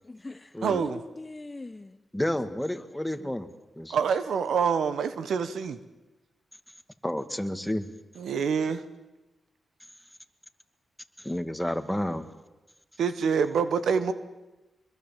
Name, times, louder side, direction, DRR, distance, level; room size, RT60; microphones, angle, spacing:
voice 1, 0.0-2.0 3.2-3.3, left 2 dB, 30° left, 1.0 m, -42 dB
voice 2, 0.6-1.0 3.9-5.8 8.2-8.8 13.0-14.1, right 6 dB, 80° right, 1.2 m, -26 dB
voice 3, 2.1-3.5 3.8-4.0 7.0-7.9 11.2-12.2, left 1 dB, 5° left, 2.2 m, -30 dB
25.5 x 22.0 x 7.4 m
supercardioid pair, 45°, 0 cm